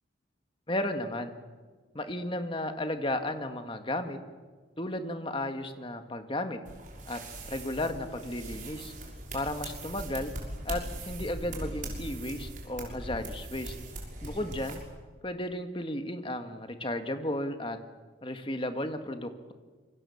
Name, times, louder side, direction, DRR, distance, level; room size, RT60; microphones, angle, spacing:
voice 1, 0.7-1.3 1.9-4.2 4.8-6.6 7.1-7.2 7.5-8.9 9.3-10.3 10.7-13.8 14.2-14.8 15.2-17.8 18.2-19.5, left 1 dB, 30° left, 7 dB, 1.8 m, -34 dB
sound 1, 6.7-14.7, right 1 dB, 45° right, 6.2 m, -40 dB
27.0 x 24.0 x 7.2 m, 1.4 s
head